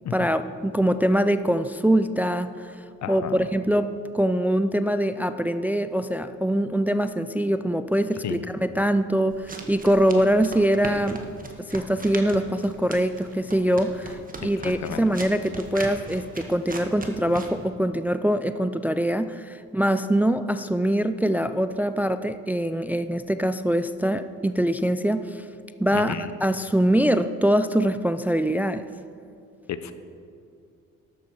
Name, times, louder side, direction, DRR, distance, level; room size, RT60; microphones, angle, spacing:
voice 1, 0.1-2.7 3.1-11.2 11.6-25.4 25.8-26.1 26.4-28.9, right 1 dB, 5° right, 11 dB, 0.4 m, -23 dB
voice 2, 3.0-3.4 8.2-8.4 14.4-15.0 25.9-26.3 29.7-29.9, left 8 dB, 65° left, 11 dB, 0.9 m, -32 dB
sound 1, 9.3-17.6, right 2 dB, 30° right, 1.6 m, -39 dB
13.5 x 12.0 x 4.7 m, 2.4 s
cardioid pair, 90°, 30 cm